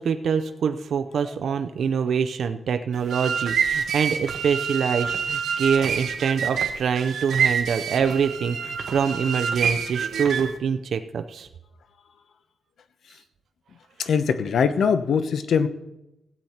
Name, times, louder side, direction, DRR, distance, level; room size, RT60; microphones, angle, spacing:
voice 1, 0.0-11.5, right 6 dB, 70° right, 8 dB, 0.6 m, -25 dB
sound 1, 2.9-10.6, right 6 dB, 85° right, 1.0 m, -27 dB
voice 2, 14.0-15.7, left 6 dB, 70° left, 12 dB, 0.8 m, -22 dB
16.5 x 8.0 x 4.3 m, 0.91 s
wide cardioid pair, 140°, 0 cm